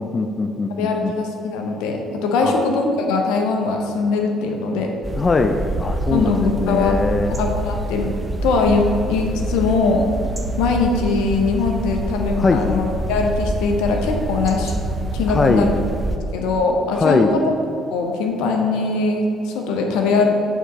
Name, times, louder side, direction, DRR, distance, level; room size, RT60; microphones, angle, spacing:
voice 1, 0.0-1.1 2.4-2.6 5.2-7.4 12.4-12.6 15.3-15.7 16.9-17.3, left 3 dB, 35° left, 6 dB, 0.4 m, -20 dB
voice 2, 0.8-4.9 6.1-8.1 8.4-10.1 10.6-14.7 15.1-15.7 16.3-17.4 17.9-20.3, left 3 dB, 80° left, 2 dB, 0.7 m, -21 dB
sound 1, 5.0-16.2, right 1 dB, 20° right, 0.7 m, -26 dB
8.1 x 3.8 x 4.1 m, 2.6 s
hypercardioid pair, 60°, 0 cm